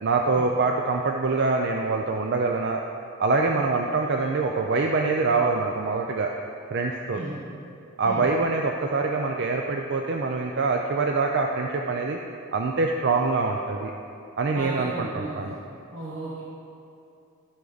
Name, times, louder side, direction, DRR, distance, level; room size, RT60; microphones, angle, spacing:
voice 1, 0.0-2.8 3.2-6.3 6.7-7.2 8.0-12.2 12.5-13.9 14.4-15.6, right 3 dB, 50° right, 2 dB, 0.5 m, -24 dB
voice 2, 14.5-15.5 15.9-16.4, right 2 dB, 70° right, -6 dB, 1.2 m, -35 dB
14.0 x 6.2 x 4.0 m, 2.7 s
head